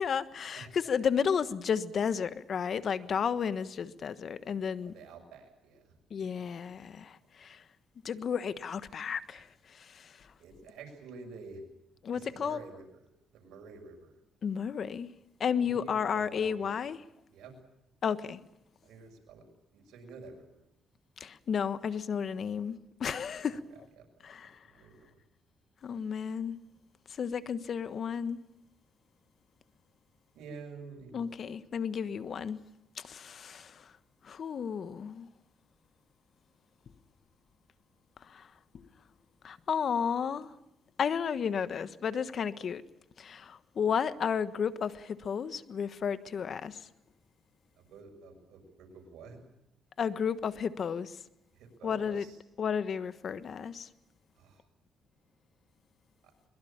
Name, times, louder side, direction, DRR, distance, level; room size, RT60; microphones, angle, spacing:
voice 1, 0.0-4.9 6.1-7.6 8.0-9.5 9.7-10.1 12.0-12.6 14.4-15.1 15.4-17.0 18.0-18.4 21.2-23.6 24.2-24.5 25.8-26.6 27.2-28.4 31.1-32.6 33.0-33.8 34.2-35.3 38.3-38.5 38.7-38.8 39.4-40.5 41.0-42.8 43.2-46.8 50.0-51.2 51.8-52.3 52.6-53.9, left 7 dB, 55° left, 1.3 m, -32 dB
voice 2, 4.8-5.9 10.4-11.6 12.1-13.1 13.3-14.1 15.6-16.7 17.3-17.5 18.8-19.5 19.7-20.5 23.5-23.6 24.0-24.1 24.4-25.1 30.3-31.3 47.8-49.4 51.5-52.4 54.4-54.6, right 4 dB, 90° right, 6.5 m, -49 dB
23.0 x 22.5 x 8.8 m
cardioid pair, 90°, 0 cm